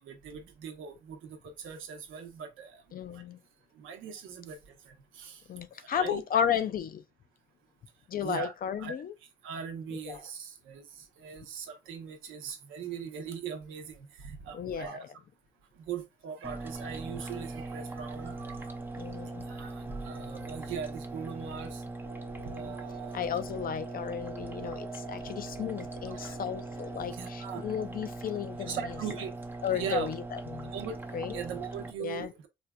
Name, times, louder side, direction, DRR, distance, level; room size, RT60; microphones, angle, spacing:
voice 1, 0.0-2.8 3.1-3.2 3.8-4.6 4.9-5.4 5.9-6.2 8.2-8.5 8.8-8.9 9.4-15.0 15.9-18.8 19.5-21.8 22.4-23.2 26.1-26.3 27.1-27.6 28.6-29.3 29.7-30.1 30.7-31.0 31.3-32.3, right 7 dB, 85° right, 0.8 m, -40 dB
voice 2, 2.9-3.4 5.5-7.0 8.1-9.1 9.9-10.2 14.5-15.0 19.0-19.4 22.4-22.7 23.1-28.8 29.6-30.7 31.1-31.4 32.0-32.3, left 8 dB, 45° left, 0.4 m, -34 dB
sound 1, 16.4-31.9, right 2 dB, 10° right, 0.5 m, -41 dB
sound 2, 18.4-18.8 19.4-19.8 20.4-20.8 21.4-21.8 22.3-22.7 23.4-23.8 24.4-24.8 25.4-25.8, equal, 75° left, 0.9 m, -53 dB
sound 3, 22.0-27.1, right 6 dB, 55° right, 0.8 m, -47 dB
4.3 x 2.4 x 2.2 m
cardioid pair, 90°, 20 cm